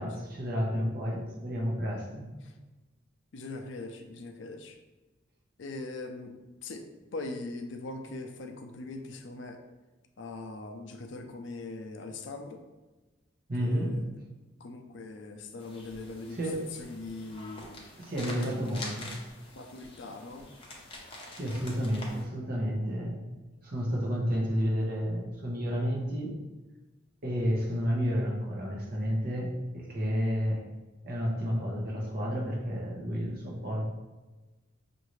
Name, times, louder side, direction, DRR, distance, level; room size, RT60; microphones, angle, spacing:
voice 1, 0.0-2.3 13.5-14.0 16.3-16.6 18.0-19.2 21.3-23.2 23.6-26.4 27.2-30.6 31.0-33.8, equal, 45° right, -2 dB, 0.9 m, -31 dB
voice 2, 3.3-4.8 5.6-6.3 6.6-6.8 7.1-9.6 10.2-12.6 13.6-14.1 14.6-16.4 16.7-17.7 18.3-18.9 19.6-20.5, left 2 dB, 65° left, 5 dB, 0.5 m, -41 dB
sound 1, 15.6-22.2, left 2 dB, 25° left, 0.7 m, -46 dB
5.6 x 2.6 x 3.1 m, 1.2 s
head